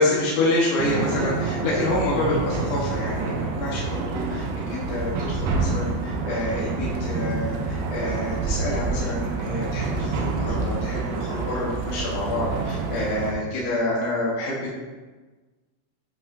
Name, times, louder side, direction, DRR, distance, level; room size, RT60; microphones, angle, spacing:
voice 1, 0.0-14.8, left 2 dB, 70° left, -6 dB, 1.9 m, -27 dB
sound 1, 0.8-13.3, right 4 dB, 85° right, 3.2 m, -27 dB
10.5 x 5.5 x 2.7 m, 1.3 s
omnidirectional pair, 5.7 m